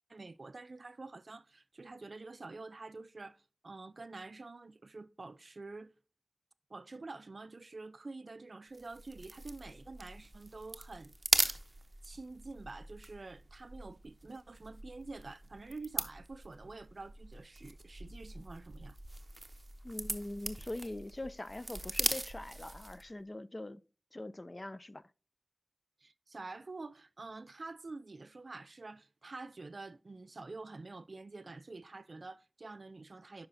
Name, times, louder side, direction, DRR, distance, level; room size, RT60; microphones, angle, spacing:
voice 1, 0.1-5.9 6.7-11.1 12.0-19.0 26.0-33.5, right 3 dB, 65° right, 0.3 m, -47 dB
sound 1, 8.7-23.1, right 2 dB, 35° right, 0.7 m, -40 dB
voice 2, 19.8-23.8 24.1-25.0, left 1 dB, 35° left, 0.4 m, -43 dB
9.7 x 5.6 x 2.6 m
wide cardioid pair, 50°, 0 cm